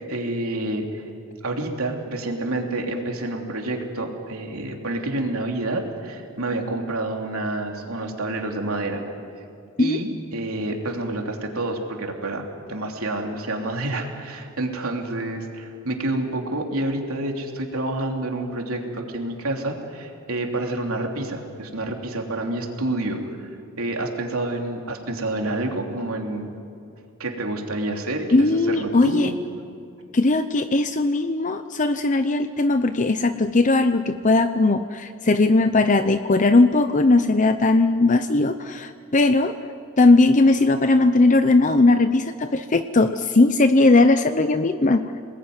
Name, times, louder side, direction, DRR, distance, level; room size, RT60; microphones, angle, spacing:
voice 1, 0.1-1.0 1.4-9.0 9.8-23.5 23.8-26.5 27.2-29.3, right 2 dB, 80° right, 2 dB, 3.2 m, -28 dB
voice 2, 28.3-29.3 30.1-39.5 40.0-45.0, left 2 dB, 35° left, 9 dB, 0.7 m, -18 dB
28.5 x 20.0 x 9.5 m, 2.4 s
head